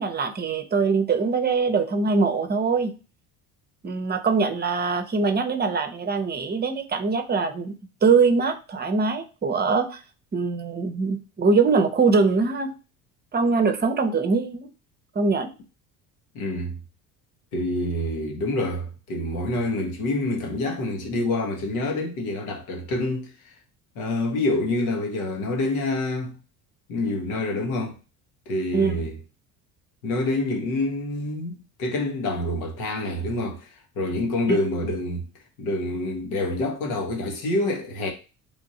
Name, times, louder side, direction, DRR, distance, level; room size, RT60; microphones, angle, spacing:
voice 1, 0.0-2.9 3.8-7.8 8.0-10.0 10.3-12.7 13.3-14.7 15.2-15.5 28.7-29.0 34.5-34.6, right 4 dB, 25° right, 0.7 m, -22 dB
voice 2, 16.3-16.8 17.5-23.5 23.9-26.4 26.9-28.0 28.5-29.2 30.0-35.3 35.6-38.1, left 2 dB, 85° left, 1.1 m, -27 dB
3.4 x 2.6 x 4.1 m
hypercardioid pair, 75°, 43 cm